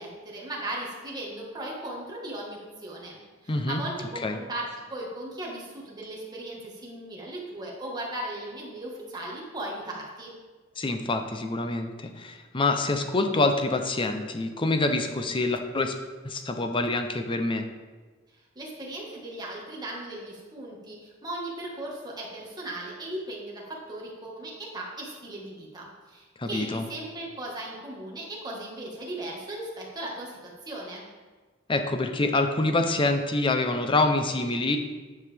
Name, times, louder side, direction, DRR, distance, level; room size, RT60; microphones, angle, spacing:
voice 1, 0.0-10.3 18.5-31.1, right 1 dB, 20° right, -3 dB, 1.6 m, -37 dB
voice 2, 3.5-3.8 4.2-4.4 10.8-15.9 16.2-17.7 26.4-26.8 31.7-34.8, left 2 dB, 25° left, 6 dB, 0.6 m, -26 dB
9.4 x 5.5 x 3.4 m, 1.3 s
head